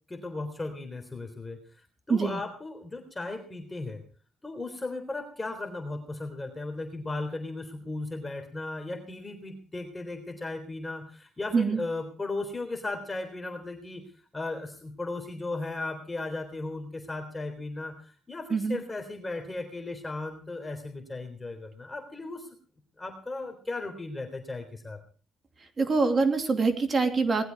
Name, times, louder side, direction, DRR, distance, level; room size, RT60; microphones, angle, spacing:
voice 1, 0.1-4.0 4.4-14.1 14.3-22.5 23.0-25.0, left 2 dB, 20° left, 4 dB, 3.6 m, -36 dB
voice 2, 2.1-2.4 11.5-11.8 18.5-18.8 25.8-27.4, right 4 dB, 35° right, 6 dB, 2.8 m, -24 dB
20.0 x 12.5 x 4.7 m, 0.42 s
cardioid pair, 90°, 0 cm